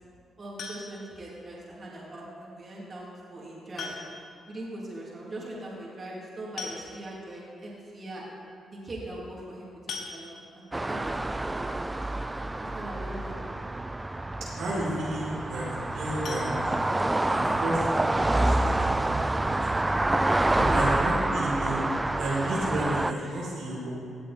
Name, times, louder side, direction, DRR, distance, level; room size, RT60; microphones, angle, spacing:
voice 1, 0.4-3.9 4.5-8.2 8.7-9.8 10.1-11.0 11.2-12.1 12.6-13.6 20.5-20.8 21.4-21.5 23.1-23.3, right 1 dB, 40° right, -5 dB, 3.1 m, -40 dB
sound 1, 0.6-1.2 2.7-2.8 3.8-4.4 4.7-4.8 5.1-5.2 6.2-6.3 6.6-7.3 7.8-7.9 8.3-8.5 9.9-10.7 16.2-17.4 17.8-17.9 18.3-18.4 18.8-18.9, left 4 dB, 70° left, 1.5 m, -40 dB
sound 2, 10.7-23.1, right 2 dB, 15° right, 0.4 m, -27 dB
voice 2, 14.5-16.5 17.3-18.7 19.0-19.3 19.7-19.8 20.7-21.8 22.1-23.9, right 1 dB, 80° right, -7 dB, 3.4 m, -32 dB
17.5 x 7.2 x 4.4 m, 2.4 s
cardioid pair, 70°, 0 cm